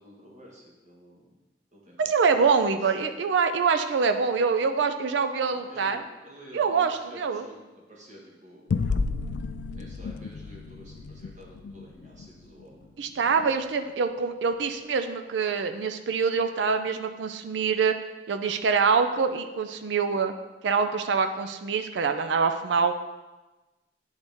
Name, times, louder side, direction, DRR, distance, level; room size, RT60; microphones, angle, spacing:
voice 1, 0.0-1.3 1.7-3.1 5.5-8.7 9.7-12.9 19.7-19.9, equal, 45° right, -4 dB, 1.4 m, -50 dB
voice 2, 2.0-6.0 6.5-7.4 13.0-17.9 18.3-20.3 20.6-22.9, right 5 dB, 90° right, 8 dB, 0.4 m, -25 dB
sound 1, 8.7-13.5, left 4 dB, 75° left, 0.3 m, -33 dB
9.7 x 4.0 x 3.5 m, 1.2 s
head